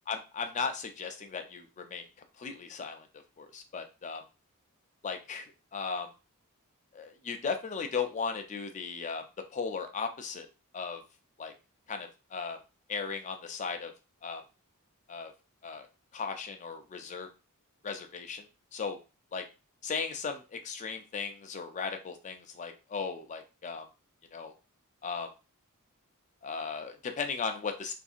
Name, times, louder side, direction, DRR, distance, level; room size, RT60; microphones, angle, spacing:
voice 1, 0.1-2.1 2.4-3.1 3.4-4.2 5.0-6.1 6.9-9.3 9.5-10.5 10.7-11.0 11.4-11.5 11.9-12.6 12.9-13.9 14.2-14.4 15.1-15.3 15.6-15.9 16.1-17.3 17.8-18.4 18.7-19.0 19.3-19.4 19.8-23.9 24.3-24.5 25.0-25.3 26.4-27.9, left 5 dB, 35° left, 6 dB, 0.4 m, -36 dB
2.7 x 2.6 x 2.4 m, 0.30 s
head